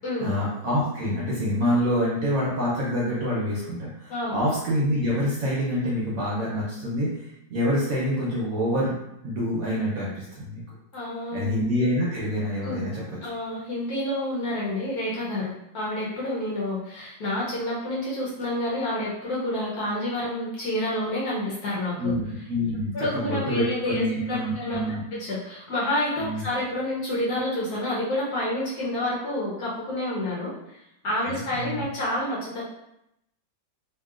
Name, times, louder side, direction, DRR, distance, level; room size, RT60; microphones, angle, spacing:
voice 1, 0.2-7.1 7.5-9.0 9.2-10.6 11.3-13.0 22.0-22.2 22.5-25.0 26.2-26.4 31.2-31.8, equal, 60° right, -6 dB, 1.0 m, -26 dB
voice 2, 4.1-4.4 10.9-11.5 12.6-12.9 13.2-22.2 22.9-24.8 25.1-32.6, left 1 dB, 65° left, -6 dB, 1.1 m, -29 dB
2.9 x 2.8 x 2.4 m, 0.83 s
omnidirectional pair, 2.0 m